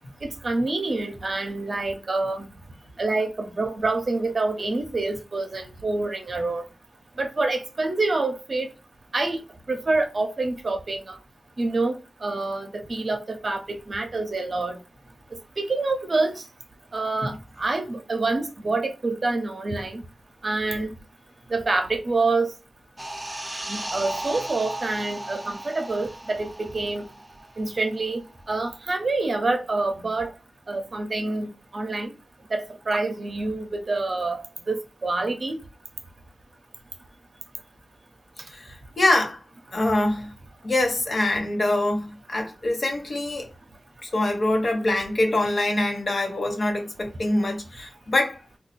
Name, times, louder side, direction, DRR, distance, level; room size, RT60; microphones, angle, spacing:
voice 1, 0.2-2.5 3.0-6.6 7.2-8.7 9.1-9.4 9.7-11.2 11.6-14.8 15.6-16.4 16.9-20.0 20.4-20.9 21.5-22.5 23.7-27.0 27.6-28.2 28.5-30.3 30.7-32.1 32.5-35.6, right 3 dB, 55° right, 0.7 m, -27 dB
sound 1, 23.0-28.1 28.3-28.5, right 1 dB, 15° right, 0.4 m, -36 dB
voice 2, 38.5-39.4 39.7-40.3 40.6-43.5 44.0-48.4, left 2 dB, 60° left, 1.0 m, -24 dB
2.6 x 2.3 x 4.0 m
cardioid pair, 55°, 0 cm